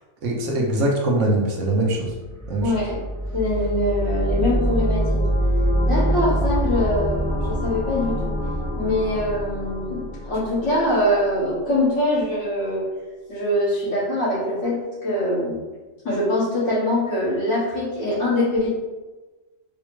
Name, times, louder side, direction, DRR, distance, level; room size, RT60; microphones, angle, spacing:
voice 1, 0.2-2.1 2.5-2.7, right 1 dB, 70° right, -2 dB, 1.0 m, -22 dB
sound 1, 2.2-11.1, equal, 85° left, 1.4 m, -24 dB
voice 2, 2.6-3.0 3.3-5.2 5.8-8.3 8.8-12.8 13.3-15.6 16.0-18.7, left 1 dB, 65° left, -10 dB, 1.9 m, -23 dB
4.8 x 2.2 x 3.1 m, 1.2 s
omnidirectional pair, 1.4 m